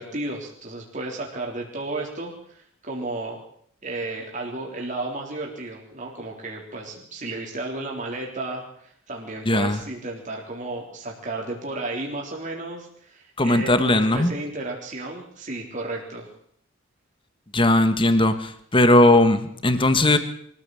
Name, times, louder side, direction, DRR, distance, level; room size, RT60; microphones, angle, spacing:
voice 1, 0.0-3.4 3.8-16.3, right 2 dB, 40° right, -1 dB, 3.7 m, -33 dB
voice 2, 9.5-9.8 13.4-14.3 17.5-20.2, left 1 dB, 25° left, 10 dB, 1.7 m, -18 dB
24.0 x 15.0 x 7.9 m, 0.67 s
head